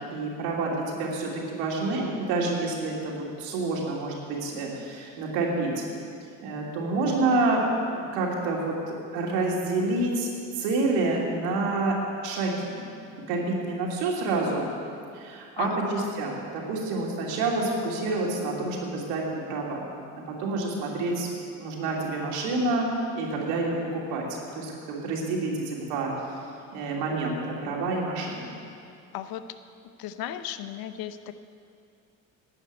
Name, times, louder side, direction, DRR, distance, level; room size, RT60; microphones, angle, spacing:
voice 1, 0.1-5.8 6.4-10.3 10.5-11.9 12.2-12.8 13.3-14.7 15.1-19.8 20.3-21.3 21.6-22.9 23.1-24.3 24.6-26.1 26.7-28.5, right 2 dB, 75° right, -2 dB, 2.9 m, -28 dB
voice 2, 7.1-7.4 15.6-16.1 29.1-29.4 30.0-31.3, left 11 dB, 60° left, 11 dB, 0.8 m, -36 dB
11.0 x 8.1 x 9.1 m, 2.5 s
hypercardioid pair, 70°, 41 cm